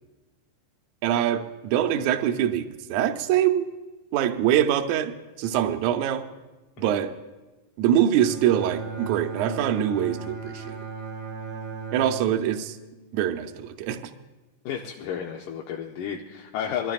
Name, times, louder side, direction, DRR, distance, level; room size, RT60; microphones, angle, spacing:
voice 1, 1.0-3.7 4.1-6.2 6.8-7.1 7.8-10.8 11.9-12.8 13.1-14.0, right 10 dB, 75° right, 6 dB, 1.8 m, -24 dB
Bowed string instrument, 8.2-13.6, right 4 dB, 50° right, 1.5 m, -36 dB
voice 2, 14.7-16.9, left 8 dB, 75° left, 0 dB, 2.2 m, -32 dB
23.5 x 14.0 x 2.4 m, 1.1 s
omnidirectional pair, 3.9 m